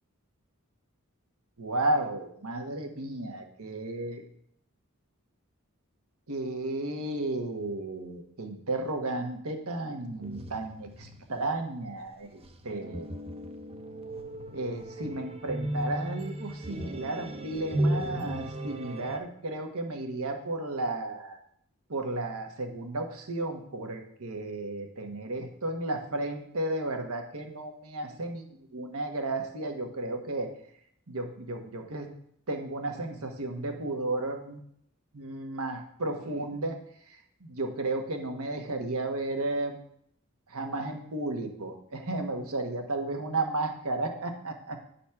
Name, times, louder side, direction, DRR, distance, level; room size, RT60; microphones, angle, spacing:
voice 1, 1.6-4.2 6.3-13.1 14.5-21.4 21.9-30.5 31.1-32.1 32.5-34.6 35.1-36.8 37.4-39.8 40.5-44.8, right 2 dB, 80° right, 4 dB, 1.3 m, -33 dB
sound 1, 10.2-19.2, right 1 dB, 25° right, 0.6 m, -35 dB
9.7 x 4.1 x 5.8 m, 0.68 s
head